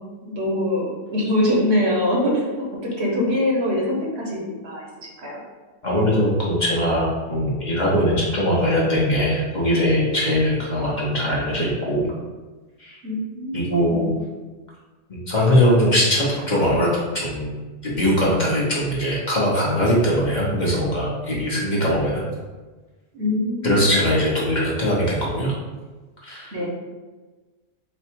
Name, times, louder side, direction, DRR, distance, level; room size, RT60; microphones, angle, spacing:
voice 1, 0.2-5.4 13.0-14.1 23.1-23.9 26.5-26.7, left 1 dB, 60° right, -3 dB, 1.1 m, -24 dB
voice 2, 5.8-12.1 12.8-13.0 13.5-14.1 15.1-17.5 17.8-22.2 23.6-25.5 26.2-26.6, equal, 40° left, -6 dB, 1.0 m, -21 dB
4.3 x 2.4 x 4.4 m, 1.3 s
omnidirectional pair, 1.3 m